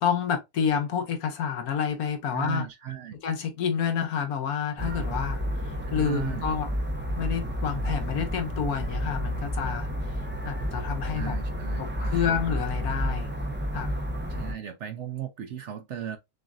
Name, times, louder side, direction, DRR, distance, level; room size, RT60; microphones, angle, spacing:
voice 1, 0.0-2.7 3.2-6.7 7.2-10.1 10.4-11.3 11.8-13.3 13.7-13.9, left 7 dB, 80° left, 1.3 m, -29 dB
voice 2, 2.3-3.2 5.8-6.5 11.1-12.4 14.3-16.2, right 10 dB, 65° right, 0.8 m, -36 dB
sound 1, 4.8-14.5, equal, 15° right, 0.5 m, -31 dB
6.2 x 2.4 x 2.4 m
omnidirectional pair, 1.6 m